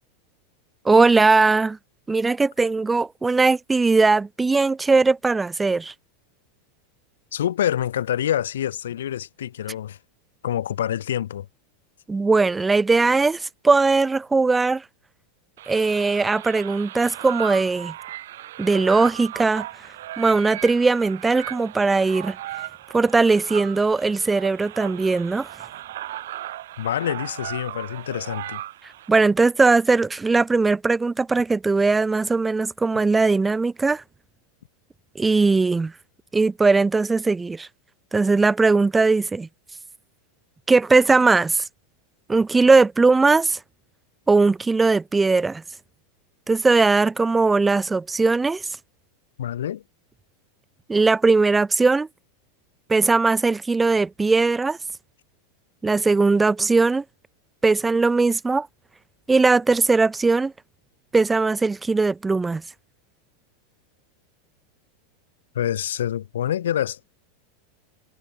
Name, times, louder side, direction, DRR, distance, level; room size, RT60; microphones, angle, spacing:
voice 1, 0.8-1.8 2.1-5.9 12.1-14.8 15.7-17.9 18.6-19.7 20.2-22.4 22.9-25.5 29.1-34.0 35.1-35.9 36.3-37.7 38.1-39.5 40.7-41.6 42.3-43.6 44.3-45.6 46.5-48.6 50.9-52.1 52.9-54.8 55.8-57.0 57.6-58.7 59.3-60.5 61.1-62.6, right 3 dB, 15° right, 1.2 m, -19 dB
voice 2, 7.3-10.0 10.4-11.5 26.8-28.6 49.4-49.8 65.5-67.0, left 10 dB, 70° left, 6.8 m, -26 dB
sound 1, 15.6-29.1, right 14 dB, 65° right, 3.2 m, -37 dB
hypercardioid pair, 90°, 0 cm